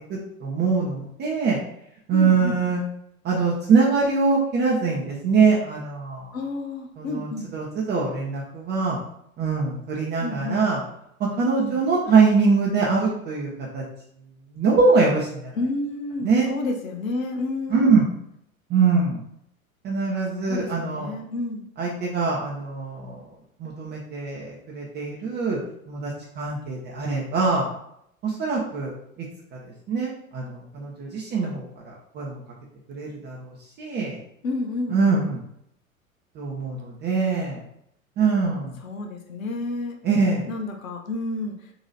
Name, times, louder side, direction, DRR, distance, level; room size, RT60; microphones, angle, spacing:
voice 1, 0.1-1.6 2.1-2.8 3.2-6.3 7.0-9.0 9.4-10.8 11.2-13.8 14.5-15.5 16.2-16.5 17.7-18.0 18.7-19.2 19.8-21.1 21.8-23.2 23.6-25.6 25.9-27.7 28.2-28.9 29.5-29.6 29.9-32.4 32.9-34.2 34.9-35.4 36.3-37.6 38.2-38.8 40.0-40.5, right 4 dB, 25° right, -3 dB, 0.8 m, -23 dB
voice 2, 2.1-2.6 6.3-7.5 10.2-10.6 11.6-11.8 15.5-18.0 20.4-21.6 34.4-35.0 38.8-40.0 40.5-41.7, left 2 dB, 70° left, 2 dB, 0.9 m, -30 dB
4.1 x 2.9 x 4.0 m, 0.74 s
figure-of-eight pair, 90°, 42 cm